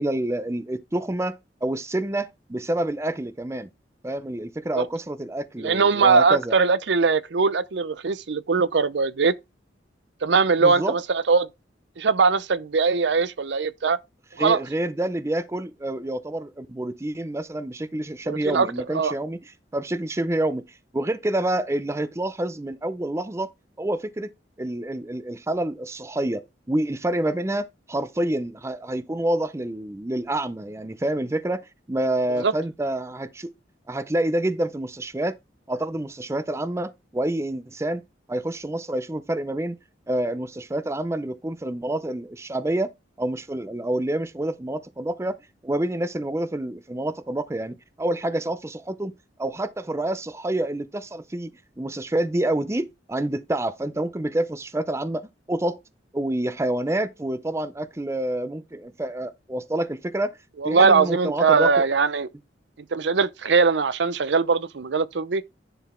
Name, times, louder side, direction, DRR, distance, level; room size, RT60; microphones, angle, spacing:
voice 1, 0.0-3.7 4.0-6.5 10.6-10.9 14.4-23.5 23.8-24.3 24.6-33.5 33.9-35.4 35.7-38.0 38.3-39.8 40.1-42.9 43.2-45.4 45.6-49.1 49.4-51.5 51.8-55.8 56.1-60.4 60.6-61.8, right 1 dB, 15° right, 0.5 m, -28 dB
voice 2, 5.6-9.3 10.2-11.5 12.0-14.0 14.4-14.6 18.3-18.7 18.9-19.1 32.4-32.5 60.6-62.3 62.9-65.4, right 4 dB, 70° right, 0.6 m, -21 dB
10.0 x 4.0 x 4.3 m
head